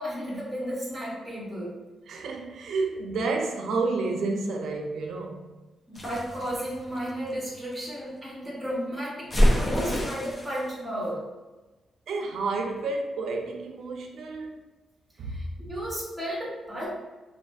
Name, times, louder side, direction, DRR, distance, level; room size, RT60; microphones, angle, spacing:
voice 1, 0.0-1.8 5.9-9.3 9.6-11.2 15.3-16.9, equal, 5° left, 0.9 m, -33 dB
voice 2, 2.1-5.5 12.1-14.7 15.2-15.7, right 3 dB, 70° right, 0.4 m, -30 dB
sound 1, 6.0-7.8 9.3-10.6, equal, 20° left, 0.4 m, -26 dB
3.1 x 2.4 x 2.2 m
wide cardioid pair, 160°, 0 cm